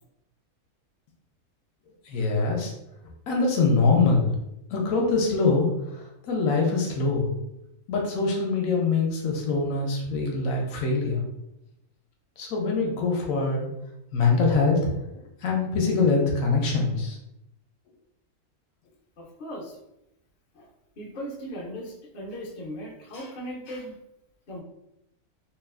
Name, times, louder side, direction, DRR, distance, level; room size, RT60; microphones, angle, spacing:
voice 1, 2.1-2.7 3.3-4.3 4.7-7.3 7.9-11.2 12.4-13.7 14.1-14.9 15.4-17.2, left 4 dB, 70° left, 0 dB, 0.9 m, -24 dB
voice 2, 19.2-19.8 20.5-20.7 21.0-24.0 24.5-24.6, equal, 55° left, -3 dB, 0.5 m, -38 dB
2.8 x 2.2 x 2.3 m, 0.85 s
omnidirectional pair, 1.5 m